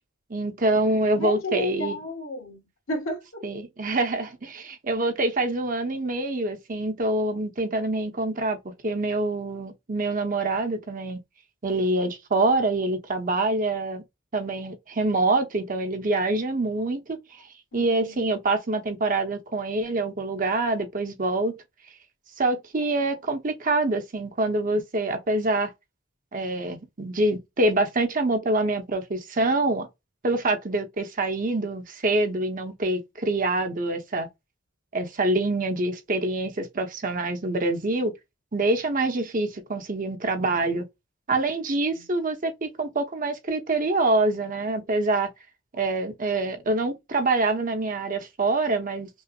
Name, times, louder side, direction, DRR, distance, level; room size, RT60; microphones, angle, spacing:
voice 1, 0.3-2.0 3.4-11.2 11.6-14.0 14.3-17.4 17.7-21.5 22.4-25.7 26.3-29.9 30.2-34.3 34.9-38.1 38.5-40.8 41.3-45.3 45.7-49.1, right 2 dB, 40° right, 0.8 m, -25 dB
voice 2, 1.2-3.4 17.7-18.2 41.8-42.0, left 1 dB, 85° left, 1.9 m, -33 dB
5.5 x 2.0 x 2.4 m
head